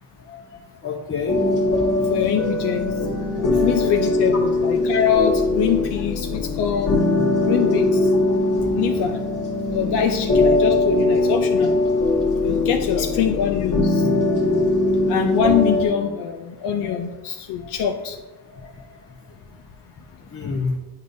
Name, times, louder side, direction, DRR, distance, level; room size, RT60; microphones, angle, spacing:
voice 1, 0.8-1.4 1.8-2.1 3.4-3.7 9.1-9.2 13.0-13.1 16.8-17.0 17.6-17.7 18.5-18.7 20.3-20.8, left 4 dB, 35° left, -2 dB, 0.7 m, -30 dB
sound 1, 1.3-15.8, left 2 dB, 50° left, 1.5 m, -21 dB
voice 2, 2.1-3.0 3.6-7.0 7.5-8.1 8.7-9.2 9.7-11.8 12.4-14.1 15.1-18.2, left 8 dB, 85° left, 3 dB, 0.5 m, -23 dB
8.0 x 5.2 x 2.6 m, 1.2 s
cardioid pair, 90°, 39 cm